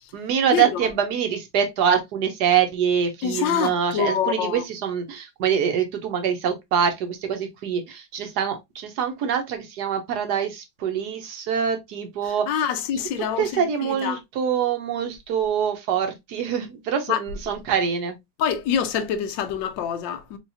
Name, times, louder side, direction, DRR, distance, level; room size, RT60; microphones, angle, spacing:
voice 1, 0.1-12.6 13.4-18.1, right 8 dB, 65° right, 1.1 m, -25 dB
voice 2, 3.2-4.6 12.5-14.2 17.1-17.2 18.4-20.4, left 8 dB, 75° left, 1.3 m, -25 dB
4.6 x 2.8 x 2.7 m
omnidirectional pair, 2.1 m